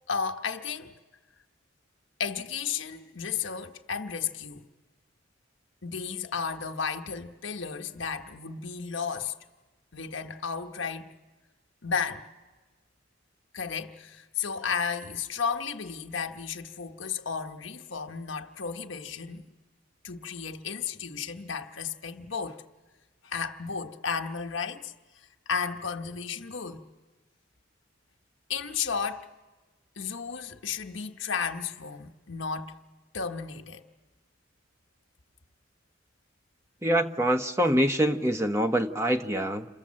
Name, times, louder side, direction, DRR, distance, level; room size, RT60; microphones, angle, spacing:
voice 1, 0.1-0.9 2.2-4.7 5.8-9.3 9.9-11.2 11.8-12.3 13.5-19.4 20.0-22.6 23.2-24.9 25.5-26.9 28.5-29.3 30.0-32.8 33.1-33.9, left 6 dB, 75° left, 1.3 m, -33 dB
voice 2, 36.8-39.7, right 1 dB, 15° right, 1.0 m, -25 dB
28.0 x 27.5 x 7.6 m
head